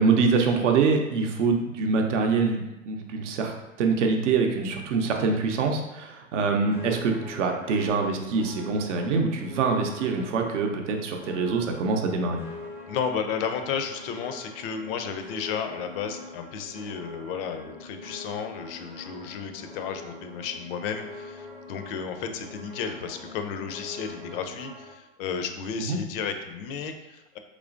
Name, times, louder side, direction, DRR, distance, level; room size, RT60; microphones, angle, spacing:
voice 1, 0.0-2.6 2.9-12.4 25.9-26.0, right 4 dB, 65° right, 3 dB, 0.7 m, -25 dB
sound 1, 6.5-24.9, left 2 dB, 5° right, 0.4 m, -44 dB
voice 2, 12.9-27.4, left 6 dB, 45° left, 7 dB, 0.5 m, -33 dB
3.7 x 3.1 x 2.5 m, 0.98 s
hypercardioid pair, 95°, 40 cm